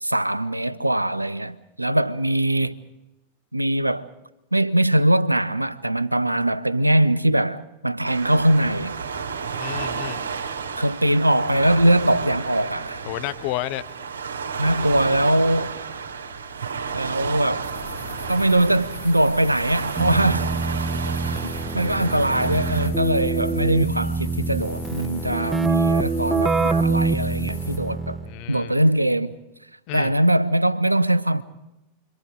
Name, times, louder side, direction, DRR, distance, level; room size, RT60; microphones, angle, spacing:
voice 1, 0.0-2.7 3.5-4.1 4.5-9.0 10.8-13.0 14.6-15.7 16.9-17.7 18.3-20.5 21.3-28.2 28.5-29.4 29.9-31.4, right 1 dB, 85° right, 0.8 m, -21 dB
Waves surf, 8.0-22.9, right 6 dB, 70° right, 2.4 m, -32 dB
voice 2, 9.6-10.2 13.1-13.8 28.2-28.7 29.9-30.1, left 16 dB, 45° left, 1.2 m, -30 dB
sound 1, 17.6-27.8, left 2 dB, 85° left, 7.1 m, -38 dB
Keyboard (musical), 20.0-28.4, right 4 dB, 10° right, 0.8 m, -25 dB
29.5 x 24.0 x 5.1 m
figure-of-eight pair, 90°, 0 cm